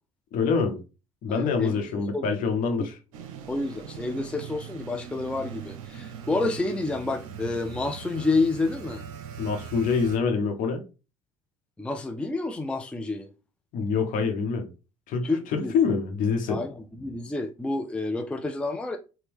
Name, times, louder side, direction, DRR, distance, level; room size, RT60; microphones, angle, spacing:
voice 1, 0.3-0.8 1.2-3.0 9.4-10.8 13.7-14.7 15.1-16.6, left 5 dB, 50° left, 0.9 m, -25 dB
voice 2, 1.3-2.2 2.8-2.9 3.5-9.0 11.8-13.3 15.2-15.9 16.5-19.0, left 3 dB, 5° left, 0.4 m, -29 dB
sound 1, 3.1-10.2, right 7 dB, 70° right, 0.6 m, -40 dB
4.2 x 2.2 x 3.4 m
figure-of-eight pair, 60°, 18 cm